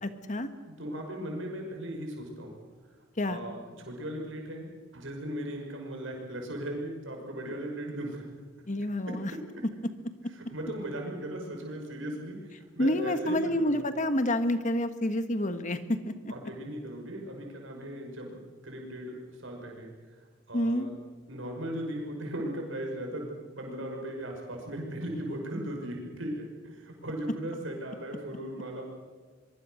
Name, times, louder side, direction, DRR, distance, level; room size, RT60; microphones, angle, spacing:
voice 1, 0.0-0.5 3.2-3.4 8.7-9.3 12.8-16.1 20.5-20.9, left 1 dB, 40° left, 9 dB, 1.5 m, -28 dB
voice 2, 0.6-2.6 3.3-4.7 4.9-8.3 9.1-9.4 10.5-13.8 16.3-19.9 20.5-20.9 21.3-23.3 23.6-28.8, right 1 dB, 80° right, 1 dB, 5.8 m, -37 dB
23.5 x 23.5 x 6.5 m, 1.5 s
head